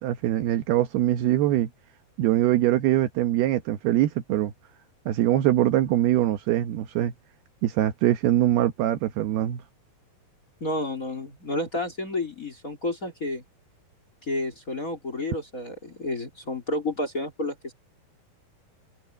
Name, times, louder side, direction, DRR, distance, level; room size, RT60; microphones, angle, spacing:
voice 1, 0.0-1.7 2.2-4.5 5.1-7.1 7.6-9.6, right 13 dB, 75° right, 2.9 m, -23 dB
voice 2, 10.6-13.4 14.2-17.7, left 2 dB, 25° left, 2.8 m, -30 dB
omnidirectional pair, 4.9 m